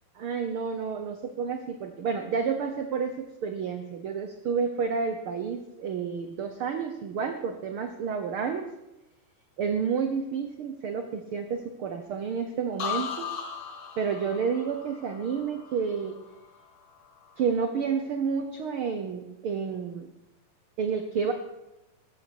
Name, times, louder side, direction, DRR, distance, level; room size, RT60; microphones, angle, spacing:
voice 1, 0.1-8.7 9.6-13.3 14.0-16.2 17.4-20.1 20.8-21.3, right 6 dB, 80° right, 7 dB, 1.2 m, -30 dB
sound 1, 12.8-16.6 17.0-17.5, left 7 dB, 50° left, 1.7 m, -37 dB
14.0 x 13.5 x 6.3 m, 0.95 s
omnidirectional pair, 3.9 m